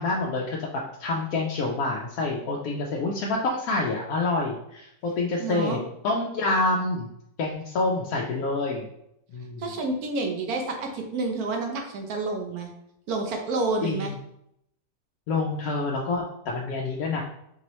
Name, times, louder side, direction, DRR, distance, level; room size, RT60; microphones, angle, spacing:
voice 1, 0.0-5.8 6.0-7.1 7.4-8.9 9.3-9.6 13.8-14.1 15.3-17.2, left 3 dB, 80° left, -2 dB, 1.0 m, -27 dB
voice 2, 5.4-5.8 9.6-12.7 13.1-14.1, right 3 dB, 85° right, 3 dB, 1.3 m, -29 dB
4.4 x 2.9 x 3.0 m, 0.77 s
omnidirectional pair, 1.5 m